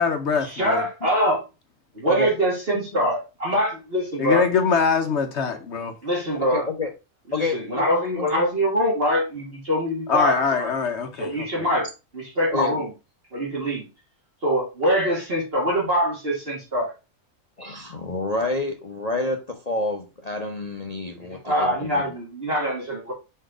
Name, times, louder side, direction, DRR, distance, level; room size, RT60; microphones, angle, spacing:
voice 1, 0.0-0.8 4.2-5.9 10.1-11.7, left 5 dB, 60° left, 1.0 m, -23 dB
voice 2, 0.5-1.4 2.0-4.4 6.0-6.6 7.4-10.7 11.2-11.9 12.1-12.9 13.3-13.9 14.4-16.9 21.4-23.1, equal, 45° right, 2.0 m, -24 dB
voice 3, 6.5-6.9 7.3-8.5 12.5-12.8 17.6-21.9, left 2 dB, 35° left, 0.8 m, -28 dB
4.6 x 4.5 x 4.9 m
omnidirectional pair, 1.4 m